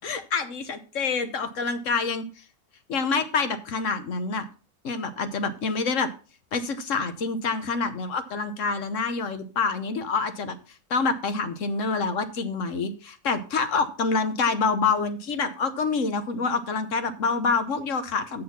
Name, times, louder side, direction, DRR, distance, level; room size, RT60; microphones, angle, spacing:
voice 1, 0.0-2.2 2.9-4.4 4.8-6.1 6.5-10.6 10.9-18.4, left 4 dB, 55° left, 10 dB, 1.1 m, -27 dB
7.6 x 6.6 x 5.8 m, 0.37 s
omnidirectional pair, 1.9 m